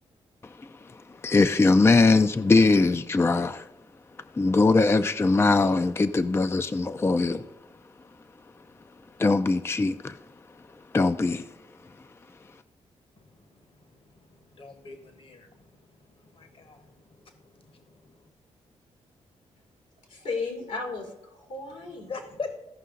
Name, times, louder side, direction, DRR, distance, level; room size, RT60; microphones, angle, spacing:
voice 1, 0.4-3.7 4.3-7.4 9.2-10.2 10.9-11.4, left 3 dB, 20° left, 0.4 m, -21 dB
voice 2, 13.2-18.3 21.8-22.5, left 4 dB, 50° left, 1.2 m, -43 dB
voice 3, 20.1-22.1, left 3 dB, 85° left, 3.0 m, -34 dB
15.0 x 5.4 x 3.8 m
cardioid pair, 70°, 12 cm